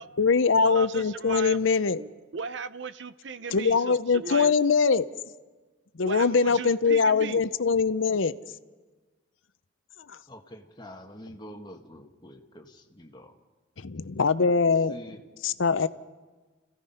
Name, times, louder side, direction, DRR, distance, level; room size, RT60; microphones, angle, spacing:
voice 1, 0.0-2.0 3.5-5.1 6.0-8.3 13.8-15.0 15.4-15.9, left 5 dB, 80° left, 14 dB, 0.7 m, -23 dB
voice 2, 0.6-1.6 1.9-4.5 6.0-7.4, right 5 dB, 65° right, 14 dB, 0.7 m, -37 dB
voice 3, 10.3-13.3 14.5-15.2, left 1 dB, 20° left, 3 dB, 1.4 m, -46 dB
29.5 x 16.0 x 5.7 m, 1.3 s
head